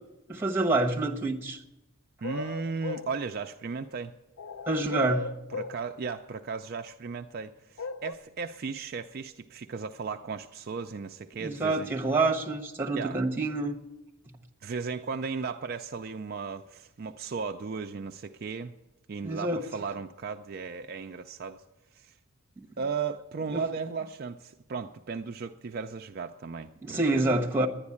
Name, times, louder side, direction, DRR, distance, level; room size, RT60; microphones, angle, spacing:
voice 1, 0.3-1.6 4.7-5.3 11.4-13.8 19.2-19.6 22.6-22.7 23.5-23.7 26.8-27.7, right 2 dB, 10° right, 1 dB, 1.1 m, -27 dB
sound 1, 2.2-3.1 4.4-5.8 7.8-8.1, left 3 dB, 75° left, 0.6 m, -36 dB
voice 2, 2.2-4.1 5.0-5.1 5.5-11.9 12.9-13.2 14.6-18.7 19.1-21.6 21.9-22.2 22.8-27.3, right 5 dB, 45° right, 5 dB, 0.4 m, -36 dB
10.5 x 10.5 x 8.4 m, 0.99 s
head